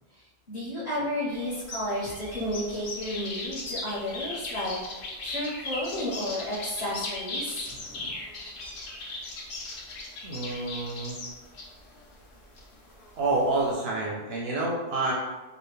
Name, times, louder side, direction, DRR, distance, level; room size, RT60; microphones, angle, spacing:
voice 1, 0.5-8.1, left 1 dB, 35° left, -10 dB, 1.3 m, -32 dB
sound 1, 1.3-13.7, left 2 dB, 55° left, 0.8 m, -38 dB
voice 2, 10.2-11.2 13.2-15.1, right 2 dB, 65° right, -3 dB, 0.7 m, -28 dB
2.9 x 2.3 x 3.3 m, 1.2 s
omnidirectional pair, 1.2 m